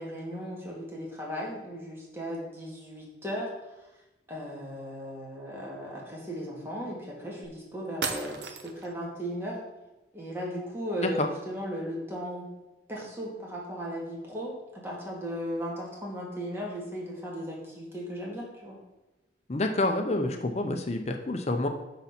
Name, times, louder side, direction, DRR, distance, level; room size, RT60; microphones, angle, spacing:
voice 1, 0.0-3.5 4.3-9.6 10.1-12.5 12.9-18.8, equal, 15° right, -4 dB, 1.8 m, -36 dB
sound 1, 7.4-7.5 8.0-8.9, right 5 dB, 65° right, 0.8 m, -34 dB
voice 2, 19.5-21.7, left 2 dB, 35° left, 5 dB, 0.6 m, -28 dB
8.7 x 4.0 x 5.8 m, 1.0 s
head